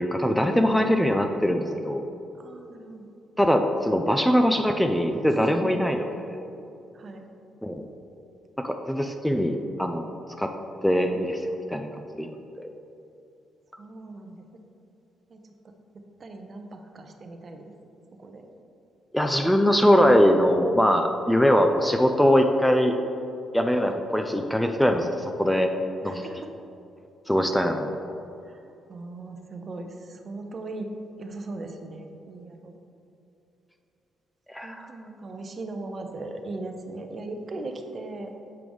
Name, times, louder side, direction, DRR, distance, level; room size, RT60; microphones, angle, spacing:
voice 1, 0.0-2.1 3.4-6.1 7.6-7.7 8.6-10.1 10.4-10.5 10.8-11.4 11.7-11.9 12.2-12.3 12.6-12.7 19.1-23.0 23.5-25.7 26.0-26.2 27.3-27.9 34.5-34.9, equal, 5° left, 5 dB, 0.4 m, -22 dB
voice 2, 2.4-3.1 5.3-5.7 6.9-7.3 13.8-14.4 15.3-15.4 16.2-17.7 18.2-18.5 23.9-24.0 26.0-26.5 28.4-28.6 28.9-30.9 31.2-32.7 34.6-38.3, right 2 dB, 45° right, 5 dB, 0.6 m, -38 dB
7.7 x 4.7 x 3.5 m, 2.7 s
cardioid pair, 90°, 0 cm